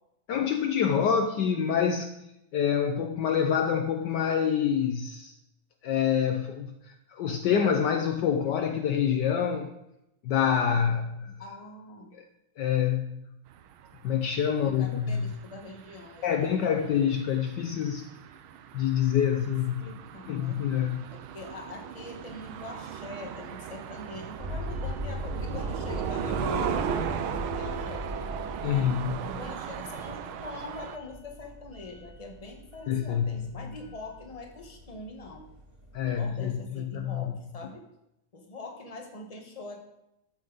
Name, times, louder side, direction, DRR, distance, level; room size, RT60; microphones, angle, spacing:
voice 1, 0.3-2.1 2.5-5.3 5.8-9.7 10.2-11.4 12.1-12.2 12.6-13.2 14.0-15.3 16.2-18.1 18.7-19.8 20.3-21.0 28.6-29.2 32.9-33.5 35.9-37.3, left 8 dB, 70° left, 6 dB, 1.2 m, -26 dB
voice 2, 11.4-12.1 14.6-16.5 19.8-20.6 21.1-28.1 28.6-28.9 29.2-35.4 36.0-37.8 38.3-39.8, left 2 dB, 20° left, 2 dB, 1.4 m, -43 dB
sound 1, 13.5-31.0, right 8 dB, 90° right, 1.6 m, -37 dB
sound 2, 24.4-36.2, equal, 40° right, 3.6 m, -39 dB
13.0 x 9.0 x 4.0 m, 0.84 s
omnidirectional pair, 2.2 m